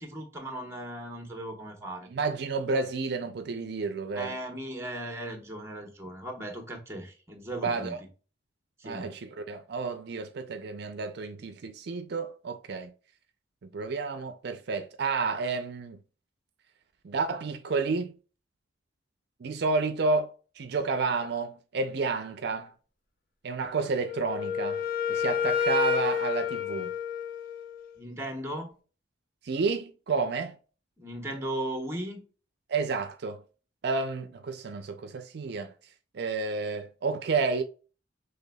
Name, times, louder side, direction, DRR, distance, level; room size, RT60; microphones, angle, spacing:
voice 1, 0.0-2.1 4.1-8.0 8.8-9.1 28.0-28.8 31.0-32.2, right 1 dB, 15° right, 1.0 m, -37 dB
voice 2, 2.1-4.4 7.6-8.0 8.8-12.9 13.7-16.0 17.0-18.2 19.4-22.7 23.4-24.8 25.1-26.9 29.4-30.6 32.7-33.4 33.8-35.7 36.1-37.6, right 4 dB, 60° right, 0.4 m, -30 dB
Wind instrument woodwind instrument, 24.0-27.9, left 6 dB, 50° left, 0.7 m, -29 dB
5.6 x 3.3 x 2.2 m
head